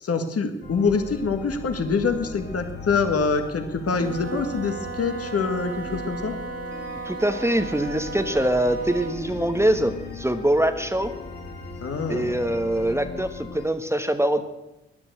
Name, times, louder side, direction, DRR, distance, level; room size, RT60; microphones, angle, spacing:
voice 1, 0.0-6.3 11.8-12.4, left 4 dB, 50° left, 7 dB, 1.7 m, -25 dB
sound 1, 0.6-13.7, left 4 dB, 35° left, 3.0 m, -38 dB
Wind instrument woodwind instrument, 3.9-9.3, right 5 dB, 50° right, 1.7 m, -36 dB
voice 2, 7.0-11.1 12.1-14.4, right 1 dB, 10° right, 8 dB, 1.2 m, -23 dB
13.5 x 10.5 x 7.9 m, 0.96 s
hypercardioid pair, 40°, 30 cm